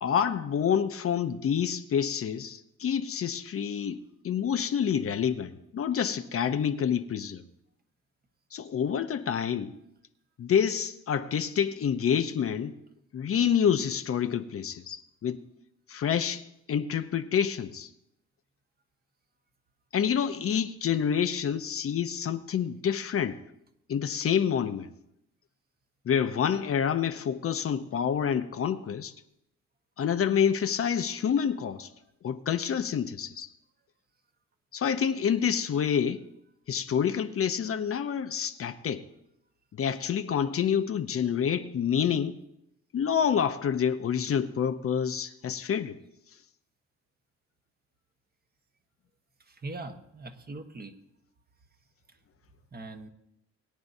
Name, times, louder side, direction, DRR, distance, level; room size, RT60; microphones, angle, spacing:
voice 1, 0.0-7.4 8.5-9.7 10.4-12.8 13.1-15.4 15.9-17.9 19.9-23.4 23.9-24.9 26.1-29.1 30.0-31.9 32.2-33.5 34.7-36.2 36.7-39.1 39.7-42.4 42.9-46.0, left 8 dB, 50° left, 0.7 m, -28 dB
voice 2, 49.5-50.9 52.7-53.1, right 2 dB, 30° right, 1.2 m, -41 dB
21.5 x 9.4 x 2.7 m
cardioid pair, 90°, 30 cm